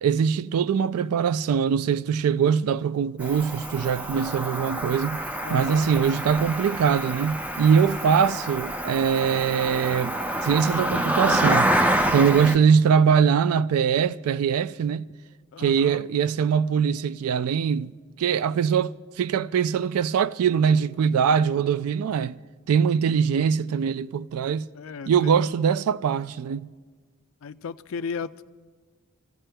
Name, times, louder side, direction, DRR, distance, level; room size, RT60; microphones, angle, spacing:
voice 1, 0.0-5.2 5.5-11.7 12.1-15.0 15.6-17.9 18.2-22.4 22.7-24.7 25.1-26.7, right 7 dB, 90° right, 0.3 m, -22 dB
Cricket, 3.2-12.6, right 1 dB, 5° right, 0.4 m, -27 dB
voice 2, 5.4-5.9 12.3-12.6 15.5-16.1 24.7-25.5 27.4-28.4, left 5 dB, 65° left, 0.4 m, -35 dB
28.0 x 15.5 x 2.2 m
head